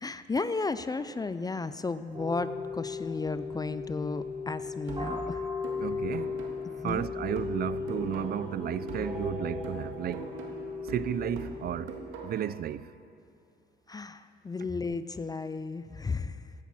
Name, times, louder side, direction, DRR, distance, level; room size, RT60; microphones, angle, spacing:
voice 1, 0.0-5.4 6.8-7.0 13.9-16.4, left 3 dB, 20° left, 0.4 m, -34 dB
sound 1, 2.1-11.8, left 4 dB, 25° right, 3.6 m, -36 dB
sound 2, 4.9-8.6 8.9-12.6, right 3 dB, 90° right, 1.7 m, -44 dB
voice 2, 5.8-6.4 6.8-10.4 10.8-12.9, right 10 dB, 50° right, 0.4 m, -33 dB
15.5 x 10.5 x 4.2 m
cardioid pair, 90°, 20 cm